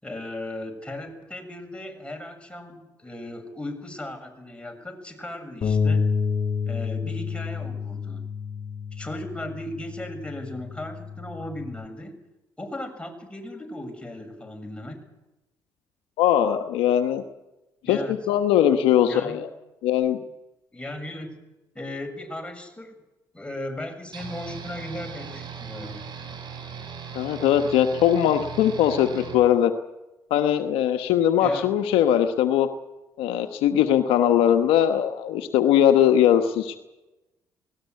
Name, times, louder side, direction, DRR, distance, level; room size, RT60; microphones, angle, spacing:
voice 1, 0.0-6.1 6.7-8.2 8.9-12.1 12.6-15.0 17.8-18.1 19.1-19.5 20.7-21.4 21.8-22.9 23.3-26.1 31.4-31.7, left 1 dB, 10° left, 4 dB, 7.0 m, -36 dB
Bass guitar, 5.6-11.9, left 5 dB, 50° left, 2.0 m, -29 dB
voice 2, 16.2-17.2 17.9-19.5 19.8-20.2 27.1-29.7 30.3-32.7 33.2-36.8, left 10 dB, 75° left, 7 dB, 1.3 m, -20 dB
sound 1, 24.1-29.4, right 7 dB, 55° right, 5.7 m, -38 dB
19.5 x 18.5 x 9.5 m, 0.99 s
hypercardioid pair, 55°, 9 cm